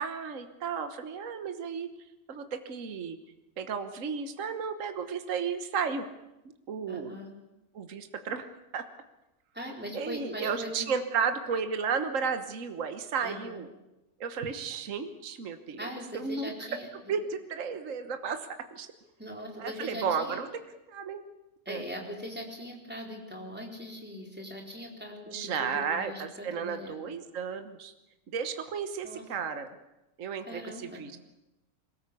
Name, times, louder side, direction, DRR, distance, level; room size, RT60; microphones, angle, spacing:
voice 1, 0.0-1.9 2.3-3.2 3.6-6.1 6.7-7.2 7.7-8.9 9.9-13.7 14.2-16.7 17.1-18.9 19.6-20.6 20.9-21.2 21.7-21.8 25.3-27.9 28.3-29.7 30.2-31.2, right 6 dB, 60° right, 8 dB, 1.6 m, -33 dB
voice 2, 6.9-7.3 9.5-10.9 13.2-13.6 15.8-17.1 19.2-20.4 21.7-26.2 26.5-27.0 29.0-29.2 30.5-31.0, equal, 5° right, 0 dB, 4.2 m, -40 dB
22.0 x 19.0 x 8.4 m, 0.95 s
omnidirectional pair, 1.6 m